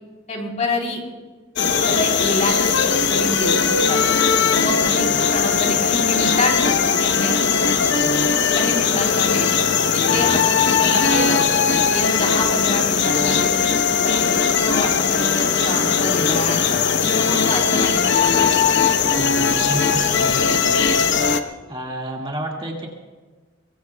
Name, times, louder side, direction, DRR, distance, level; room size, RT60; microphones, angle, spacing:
voice 1, 0.3-1.0 1.8-2.8 3.0-4.0 4.5-7.8 8.4-9.5 9.9-11.4 11.9-13.6 13.9-19.3, left 1 dB, 35° left, 0 dB, 3.7 m, -27 dB
sound 1, 1.6-21.4, left 6 dB, 60° left, 0.9 m, -19 dB
voice 2, 19.1-20.9 21.7-22.9, equal, 25° right, -1 dB, 2.0 m, -30 dB
23.5 x 23.5 x 2.3 m, 1.4 s
head